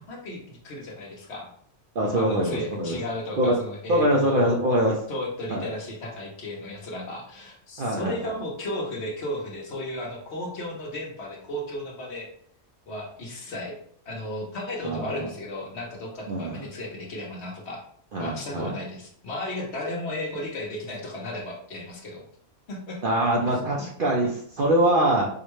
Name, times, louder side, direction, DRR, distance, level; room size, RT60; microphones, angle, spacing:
voice 1, 0.1-1.5 2.1-4.6 5.1-12.3 12.9-13.7 14.1-17.8 18.2-22.2 22.7-23.0, left 1 dB, 60° left, -1 dB, 1.1 m, -34 dB
voice 2, 2.0-3.0 3.4-3.6 3.9-5.0 5.5-5.7 7.8-8.2 14.8-15.3 16.3-16.7 18.1-18.7 23.0-25.3, right 1 dB, 55° right, -1 dB, 0.6 m, -23 dB
4.5 x 2.2 x 3.0 m, 0.62 s
omnidirectional pair, 1.3 m